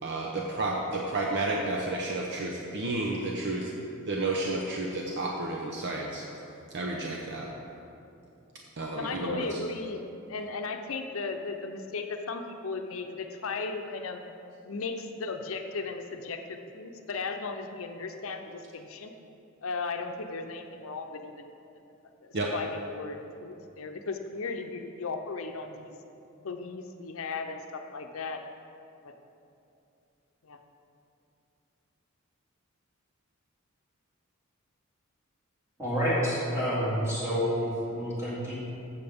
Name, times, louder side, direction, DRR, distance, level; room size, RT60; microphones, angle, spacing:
voice 1, 0.0-3.7 4.1-6.3 6.7-7.5 8.8-9.6 22.3-22.5, right 2 dB, 55° right, -1 dB, 0.8 m, -31 dB
voice 2, 8.9-14.2 14.6-19.1 19.6-21.5 22.2-26.0 26.4-28.4 29.0-29.1 30.4-30.6, left 4 dB, 70° left, 5 dB, 0.6 m, -36 dB
voice 3, 35.8-38.5, equal, 15° right, -9 dB, 2.3 m, -28 dB
14.5 x 6.9 x 3.6 m, 2.7 s
head